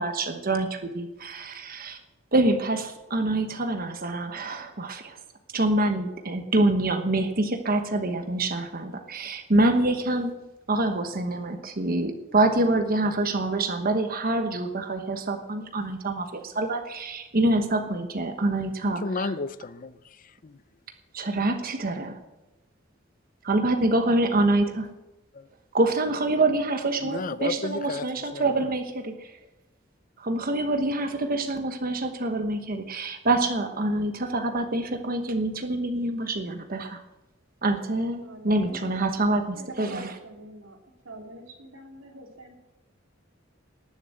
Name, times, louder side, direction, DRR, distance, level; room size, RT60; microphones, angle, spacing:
voice 1, 0.0-2.0 2.3-5.2 5.5-10.3 10.7-19.3 21.1-22.2 23.4-24.9 25.7-29.4 30.2-37.0 37.6-40.1, right 2 dB, 50° right, 5 dB, 1.1 m, -26 dB
voice 2, 19.0-20.6 25.3-25.5 27.0-28.5, left 3 dB, 45° left, 15 dB, 0.6 m, -33 dB
voice 3, 38.2-39.3 39.5-40.8 41.0-42.5, right 2 dB, 90° right, 1 dB, 3.0 m, -44 dB
19.0 x 7.2 x 7.7 m, 1.1 s
head